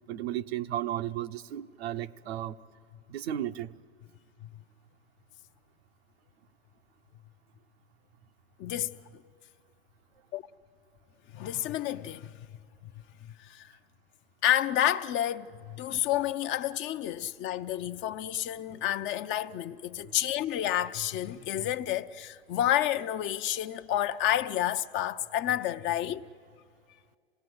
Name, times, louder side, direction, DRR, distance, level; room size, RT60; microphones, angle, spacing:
voice 1, 0.1-2.6 3.1-3.7 20.0-20.2, right 12 dB, 70° right, 0.8 m, -34 dB
voice 2, 8.6-9.0 10.3-10.4 11.3-12.3 13.4-13.7 14.4-26.2, left 12 dB, 35° left, 0.7 m, -30 dB
27.0 x 18.5 x 7.9 m
hypercardioid pair, 105°, 32 cm